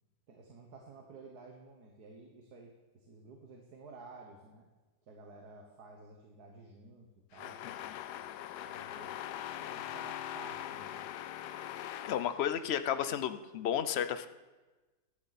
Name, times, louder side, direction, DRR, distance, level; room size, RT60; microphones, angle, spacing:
voice 1, 0.3-4.7 5.1-7.6 8.6-9.2 9.7-11.0, right 3 dB, 75° right, 1 dB, 1.9 m, -53 dB
sound 1, 7.3-13.1, left 11 dB, 85° left, 1.2 m, -42 dB
voice 2, 12.0-14.3, left 9 dB, 55° left, 11 dB, 0.7 m, -32 dB
16.5 x 11.5 x 4.2 m, 1.2 s
omnidirectional pair, 1.7 m